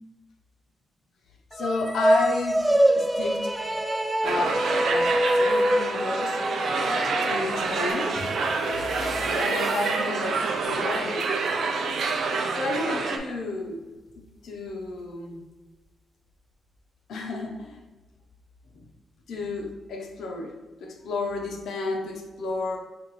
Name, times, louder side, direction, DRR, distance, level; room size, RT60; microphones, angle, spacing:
voice 1, 1.5-2.6 3.0-3.5 4.2-4.6 4.9-6.4 7.2-8.1 8.7-8.8 9.3-11.3 12.5-13.8 14.4-15.4 17.1-17.8 18.7-18.8 19.3-22.8, left 3 dB, 75° left, 1 dB, 0.8 m, -31 dB
sound 1, 1.5-10.0, equal, 5° right, 0.3 m, -26 dB
sound 2, 4.2-13.2, right 4 dB, 65° right, 0.5 m, -27 dB
sound 3, 7.9-13.3 14.5-14.7 15.0-15.1 15.7-15.8 16.5-16.8, left 1 dB, 15° left, 1.4 m, -46 dB
6.3 x 2.6 x 3.1 m, 1.2 s
cardioid pair, 115°, 0 cm